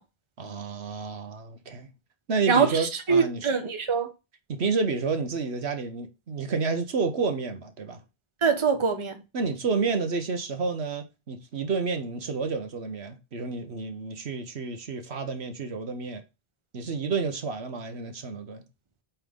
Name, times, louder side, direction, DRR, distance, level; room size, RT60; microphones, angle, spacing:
voice 1, 0.4-1.9 2.3-3.5 4.5-8.0 9.3-16.2 16.7-18.6, right 4 dB, 80° right, 1.4 m, -30 dB
voice 2, 2.5-4.1 8.4-9.1, right 5 dB, 30° right, 1.1 m, -23 dB
8.9 x 4.4 x 3.6 m
omnidirectional pair, 1.1 m